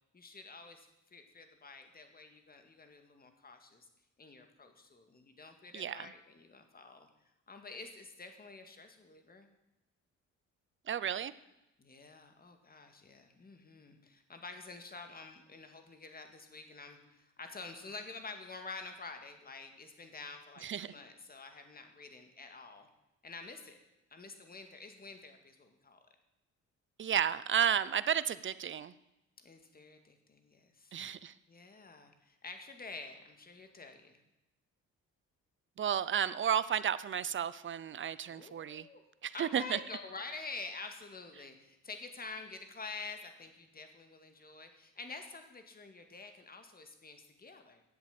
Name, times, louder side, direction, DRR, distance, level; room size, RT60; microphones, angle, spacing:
voice 1, 0.1-3.9 4.2-7.1 7.5-9.5 11.8-22.9 23.2-23.8 24.1-26.0 29.4-31.0 31.5-34.2 38.3-39.0 39.3-47.8, left 4 dB, 30° left, 6 dB, 2.0 m, -48 dB
voice 2, 5.7-6.1 10.9-11.3 20.6-20.9 27.0-28.9 30.9-31.3 35.8-38.9 39.2-39.8, right 9 dB, 40° right, 16 dB, 0.7 m, -32 dB
10.5 x 8.1 x 8.2 m, 0.91 s
cardioid pair, 90°, 30 cm